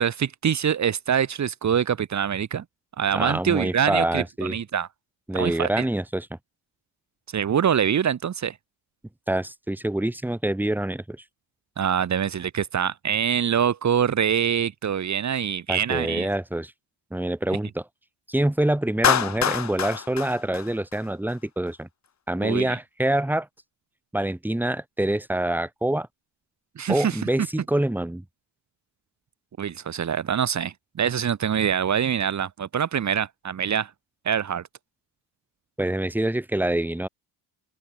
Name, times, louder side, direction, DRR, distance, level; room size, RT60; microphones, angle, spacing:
voice 1, 0.0-2.6 3.0-4.9 5.3-5.8 7.3-8.6 11.8-16.3 22.4-22.8 26.8-27.2 29.6-33.9 34.2-34.6, right 8 dB, 35° right, 4.3 m, -24 dB
voice 2, 3.1-4.6 5.3-6.4 9.3-11.2 15.7-16.7 17.1-17.9 18.3-21.9 22.3-23.5 24.1-26.1 26.9-28.2 35.8-37.1, right 1 dB, 5° right, 5.3 m, -26 dB
Clapping, 19.0-21.3, left 8 dB, 35° left, 3.2 m, -25 dB
open air
cardioid pair, 170°, 47 cm